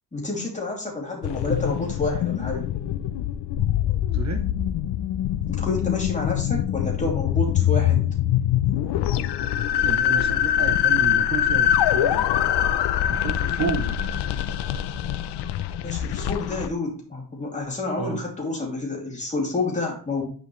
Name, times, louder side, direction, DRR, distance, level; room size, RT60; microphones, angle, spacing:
voice 1, 0.1-2.7 5.5-8.0 15.8-20.3, left 2 dB, 15° left, -2 dB, 2.7 m, -29 dB
sound 1, 1.2-16.7, left 11 dB, 75° left, 0.6 m, -24 dB
voice 2, 4.1-4.5 9.8-12.3 13.1-14.0 18.0-18.2, right 6 dB, 40° right, 7 dB, 0.7 m, -31 dB
9.7 x 5.1 x 3.1 m, 0.42 s
wide cardioid pair, 155°, 42 cm